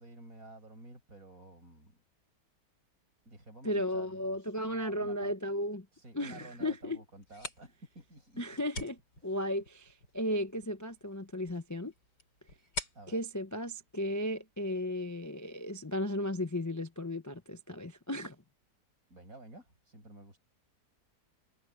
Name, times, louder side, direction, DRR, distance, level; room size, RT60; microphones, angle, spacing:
voice 1, 0.0-2.0 3.3-5.3 5.9-8.6 9.2-9.4 12.9-13.2 19.1-20.4, right 2 dB, 55° right, 8.1 m, -52 dB
voice 2, 3.6-5.9 6.1-7.0 8.4-11.9 13.1-18.4, left 1 dB, 20° left, 0.5 m, -35 dB
sound 1, 7.1-14.7, left 2 dB, 85° left, 7.9 m, -47 dB
omnidirectional pair, 1.8 m